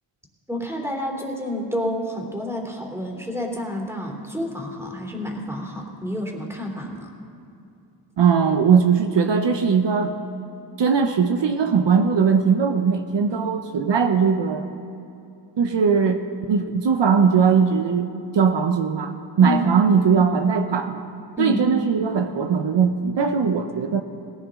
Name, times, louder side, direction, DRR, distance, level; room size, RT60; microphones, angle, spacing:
voice 1, 0.5-7.1 19.4-19.7 21.4-21.6, left 1 dB, 5° right, 1 dB, 2.9 m, -29 dB
voice 2, 8.2-10.1 10.8-14.6 15.6-16.2 16.5-18.1 18.3-21.0 21.4-24.0, right 6 dB, 70° right, 6 dB, 0.9 m, -19 dB
18.0 x 15.5 x 3.8 m, 2.6 s
cardioid pair, 65°, 45 cm